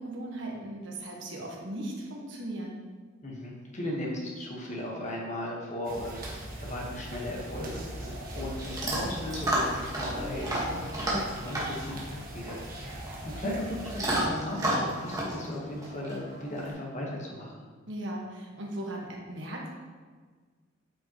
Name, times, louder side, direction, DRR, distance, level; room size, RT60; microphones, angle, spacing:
voice 1, 0.0-2.8 13.4-13.8 17.9-19.7, right 1 dB, 60° right, -2 dB, 1.4 m, -37 dB
voice 2, 3.2-13.6 14.0-17.6, left 1 dB, 35° left, -2 dB, 1.3 m, -37 dB
sound 1, 5.8-14.3, right 1 dB, 45° right, 1.3 m, -40 dB
Chewing mastication / Dog, 7.6-16.7, right 1 dB, 15° right, 1.4 m, -33 dB
8.8 x 5.3 x 3.0 m, 1.5 s
head